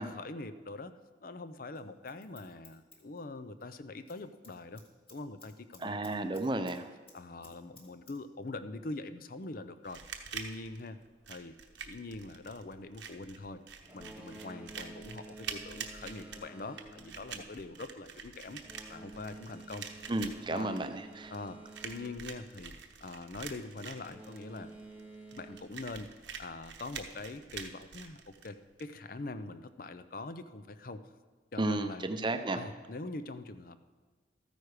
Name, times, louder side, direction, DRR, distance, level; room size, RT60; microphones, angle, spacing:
voice 1, 0.0-4.8 5.1-6.6 7.1-10.0 10.3-11.0 11.3-11.6 11.9-13.6 13.9-18.6 18.9-19.9 20.5-20.8 21.3-22.7 23.0-24.7 25.3-26.1 26.4-31.0 31.5-32.1 32.5-33.8, left 2 dB, 45° left, 12 dB, 0.5 m, -43 dB
Scissors, 1.7-3.7 4.0-4.2 4.4-6.8 7.1-8.1 8.4-8.5, left 3 dB, 30° left, 1.8 m, -57 dB
voice 2, 5.8-6.9 20.1-21.3 31.6-32.6, right 2 dB, 25° right, 8 dB, 0.6 m, -33 dB
sound 1, 9.8-28.8, right 6 dB, 70° right, 0.9 m, -46 dB
Boat Water vehicle, 13.8-23.2 24.0-25.6, right 2 dB, 10° right, 1.4 m, -51 dB
13.5 x 9.3 x 4.9 m, 1.4 s
head